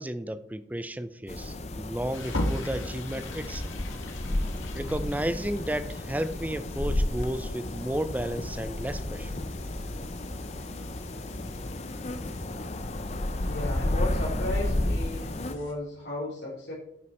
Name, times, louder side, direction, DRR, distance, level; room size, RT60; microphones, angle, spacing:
voice 1, 0.0-3.7 4.7-9.3, right 1 dB, 10° right, 13 dB, 0.4 m, -33 dB
sound 1, 1.3-15.5, left 1 dB, 35° left, 0.6 m, -32 dB
sound 2, 2.1-15.7, left 1 dB, 85° left, 1.8 m, -41 dB
voice 2, 13.4-16.7, left 1 dB, 55° left, -7 dB, 3.1 m, -35 dB
10.0 x 8.4 x 4.3 m, 0.75 s
head